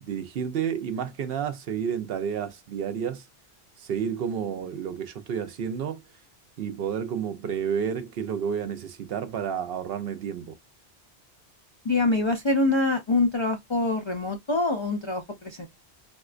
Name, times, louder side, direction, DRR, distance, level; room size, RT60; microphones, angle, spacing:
voice 1, 0.0-3.2 3.8-6.0 6.6-10.6, right 7 dB, 65° right, 0.8 m, -30 dB
voice 2, 11.8-15.7, left 2 dB, 50° left, 0.3 m, -25 dB
4.3 x 2.2 x 2.4 m
omnidirectional pair, 1.1 m